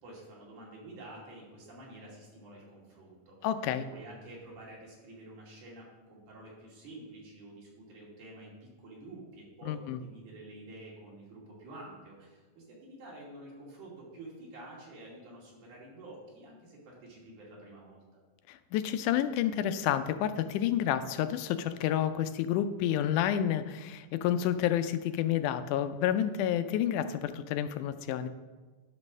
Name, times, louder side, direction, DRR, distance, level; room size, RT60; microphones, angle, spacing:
voice 1, 0.0-3.4 3.9-18.0, right 1 dB, 80° right, -4 dB, 4.0 m, -49 dB
voice 2, 3.4-3.9 9.7-10.0 18.5-28.3, left 10 dB, 90° left, 10 dB, 2.1 m, -29 dB
10.5 x 5.4 x 6.1 m, 1.3 s
omnidirectional pair, 3.5 m